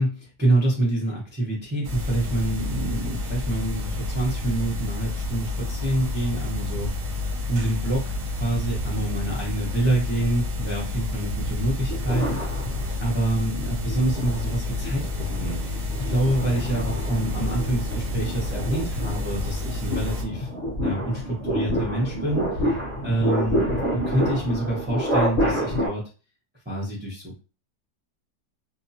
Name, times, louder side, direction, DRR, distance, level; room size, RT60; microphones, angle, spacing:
voice 1, 0.0-7.2 7.5-8.1 8.4-12.7 13.0-20.5 20.8-22.7 23.0-23.7 23.9-26.0 26.6-27.4, right 1 dB, 10° right, -4 dB, 0.5 m, -27 dB
sound 1, 1.8-20.2, left 2 dB, 65° right, 0.9 m, -30 dB
thunderbird heartbeat, 11.8-13.3 13.8-25.9, equal, 40° left, 0.6 m, -28 dB
2.8 x 2.2 x 2.7 m, 0.33 s
omnidirectional pair, 1.8 m